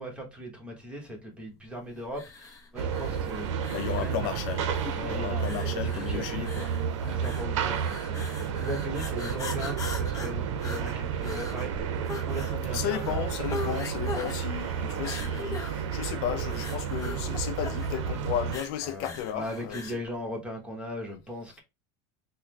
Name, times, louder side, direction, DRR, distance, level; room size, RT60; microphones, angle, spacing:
voice 1, 0.0-4.2 4.9-6.5 7.0-8.3 8.6-11.7 12.1-13.3 18.8-21.6, equal, 5° right, 1.2 m, -38 dB
sound 1, 2.1-20.0, left 3 dB, 20° left, 0.7 m, -41 dB
sound 2, 2.8-18.6, right 7 dB, 85° right, 0.6 m, -31 dB
voice 2, 3.7-4.7 5.1-6.7 12.7-19.9, left 11 dB, 60° left, 0.4 m, -34 dB
3.6 x 2.1 x 3.2 m
supercardioid pair, 120°, 15 cm